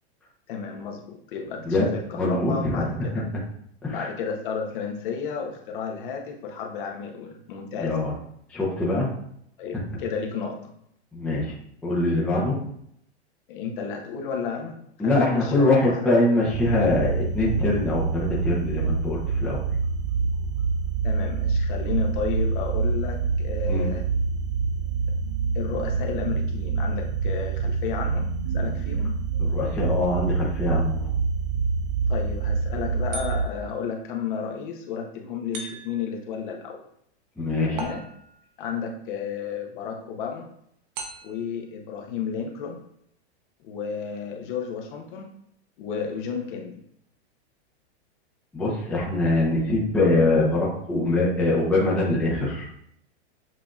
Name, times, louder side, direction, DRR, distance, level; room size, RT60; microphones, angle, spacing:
voice 1, 0.5-3.3 3.9-8.0 9.6-10.7 13.5-14.7 15.0-16.1 21.0-24.0 25.5-29.2 32.1-36.8 37.7-38.0 38.6-40.5 41.2-42.8 43.6-45.3 45.8-46.8, left 6 dB, 50° left, 2 dB, 0.9 m, -32 dB
voice 2, 2.1-3.2 3.8-4.1 7.8-8.1 8.5-9.1 11.1-11.5 11.8-12.5 15.0-19.6 23.6-23.9 29.4-31.1 37.4-37.8 48.5-52.7, left 2 dB, 5° left, -6 dB, 0.7 m, -23 dB
sound 1, 16.4-33.4, right 4 dB, 70° right, 0.7 m, -26 dB
sound 2, 33.1-33.8 35.5-36.2 37.8-38.5 40.9-41.6, right 3 dB, 40° right, 0.8 m, -38 dB
7.5 x 2.7 x 2.4 m, 0.71 s
supercardioid pair, 155°, 34 cm